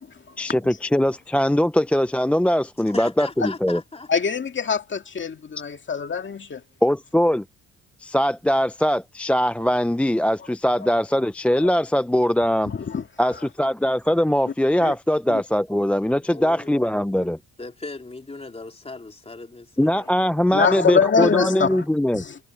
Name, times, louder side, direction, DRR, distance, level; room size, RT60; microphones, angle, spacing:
voice 1, 0.4-3.8 6.8-7.4 8.0-12.7 13.2-17.4 19.8-22.2, equal, 5° left, 0.4 m, -21 dB
voice 2, 2.9-4.1 16.2-16.9 17.6-19.9, left 3 dB, 20° left, 3.8 m, -38 dB
voice 3, 4.1-6.6 11.6-11.7 12.6-13.0 14.8-15.0 15.3-15.4 19.8-19.9 20.5-21.8 22.1-22.4, left 6 dB, 40° left, 2.3 m, -24 dB
cardioid pair, 90°, 30 cm